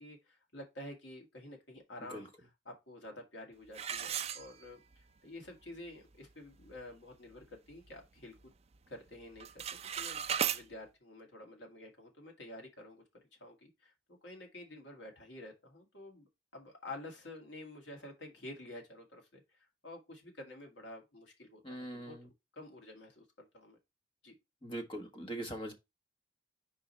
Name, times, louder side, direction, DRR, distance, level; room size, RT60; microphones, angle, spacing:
voice 1, 0.0-8.5 8.9-23.8 24.2-24.4, left 1 dB, 70° left, 2.0 m, -50 dB
sound 1, 3.7-5.0 5.5-5.6 6.1-6.2 6.6-6.9 7.4-8.5 8.7-9.1 9.3-10.6, right 8 dB, 35° right, 0.4 m, -37 dB
voice 2, 21.6-22.2 24.6-25.7, right 1 dB, 30° left, 1.3 m, -41 dB
5.1 x 4.7 x 4.3 m
head